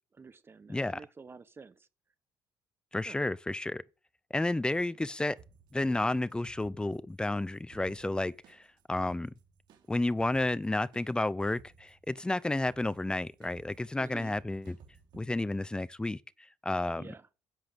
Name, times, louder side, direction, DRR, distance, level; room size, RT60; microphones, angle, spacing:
voice 1, 0.0-1.9 3.0-3.2 14.0-14.3 17.0-17.3, right 4 dB, 30° right, 0.9 m, -50 dB
voice 2, 0.7-1.0 2.9-3.8 4.3-5.4 5.7-8.6 8.9-9.3 9.9-14.8 15.1-16.2 16.6-17.0, left 2 dB, 10° left, 0.6 m, -31 dB
sound 1, 5.4-15.3, right 6 dB, 70° right, 3.6 m, -59 dB
10.5 x 8.1 x 5.2 m
cardioid pair, 90°, 8 cm